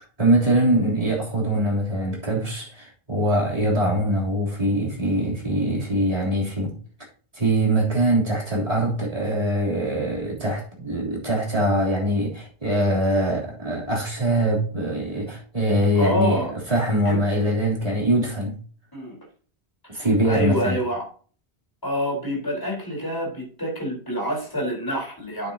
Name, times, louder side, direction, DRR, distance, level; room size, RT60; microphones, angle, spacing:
voice 1, 0.2-6.7 7.3-16.4 16.7-18.6 19.9-20.8, right 1 dB, 35° right, 3.4 m, -23 dB
voice 2, 15.9-16.5 17.0-17.2 18.9-19.2 19.8-21.1 21.8-25.5, equal, 20° left, 4.2 m, -27 dB
9.0 x 8.3 x 2.8 m
omnidirectional pair, 1.1 m